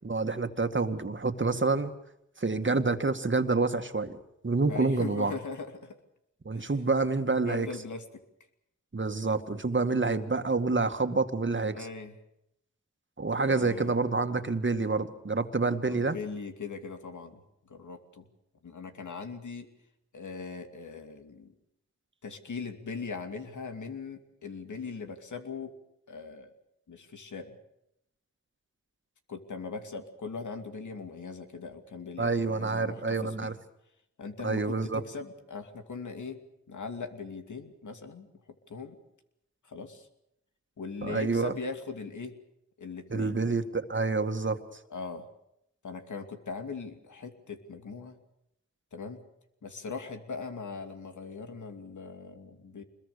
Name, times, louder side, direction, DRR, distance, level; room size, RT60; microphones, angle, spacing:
voice 1, 0.0-1.9 2.4-4.2 4.4-5.3 6.5-7.7 8.9-11.9 13.2-16.2 32.2-33.5 34.4-35.0 41.0-41.5 43.1-44.6, right 3 dB, 40° right, 8 dB, 2.0 m, -28 dB
voice 2, 4.7-6.0 6.6-6.7 7.4-8.0 11.7-12.2 13.4-14.0 15.9-18.2 18.6-19.7 20.1-21.5 22.2-25.7 26.1-26.5 26.9-27.6 29.3-33.6 34.2-36.4 36.7-38.3 38.7-39.0 39.6-40.1 40.8-42.3 42.8-43.4 44.9-45.3 45.8-48.2 48.9-49.2 49.6-52.8, left 4 dB, 80° left, 6 dB, 2.7 m, -40 dB
26.0 x 21.5 x 6.9 m, 0.81 s
cardioid pair, 45°, 29 cm